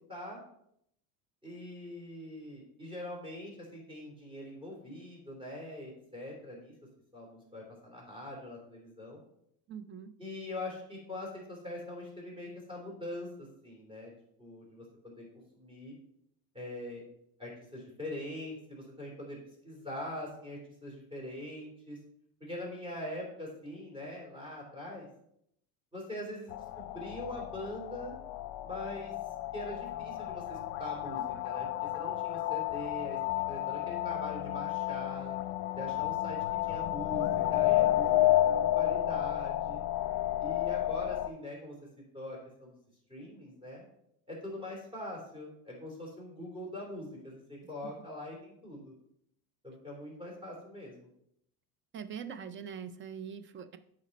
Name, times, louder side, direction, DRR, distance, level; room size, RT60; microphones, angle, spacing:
voice 1, 0.1-0.4 1.4-6.7 7.1-9.2 10.2-14.1 14.4-15.2 15.5-15.9 16.5-17.0 17.4-19.4 19.6-22.0 22.4-25.1 25.9-28.1 28.6-29.1 29.5-31.7 31.9-33.2 33.5-35.3 35.7-38.3 38.6-39.8 40.4-41.8 42.1-42.8 43.1-43.8 44.3-48.9 49.6-51.1, left 1 dB, 10° right, -2 dB, 3.3 m, -43 dB
voice 2, 9.7-10.1 47.8-47.9 51.9-53.8, right 7 dB, 30° right, 12 dB, 0.4 m, -42 dB
sound 1, 26.5-41.3, left 14 dB, 60° left, 0.7 m, -31 dB
8.2 x 5.2 x 4.1 m, 0.73 s
supercardioid pair, 110°, 45 cm